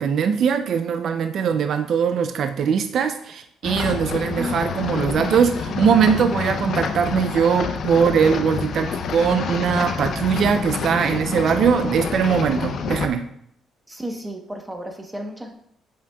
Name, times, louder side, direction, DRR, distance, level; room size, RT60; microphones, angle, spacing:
voice 1, 0.0-13.2, right 7 dB, 55° right, 8 dB, 0.4 m, -21 dB
sound 1, 3.6-13.1, left 6 dB, 50° left, 0.6 m, -27 dB
voice 2, 13.9-15.5, equal, 10° right, 3 dB, 1.0 m, -32 dB
8.2 x 7.3 x 2.3 m, 0.68 s
cardioid pair, 135°, 0 cm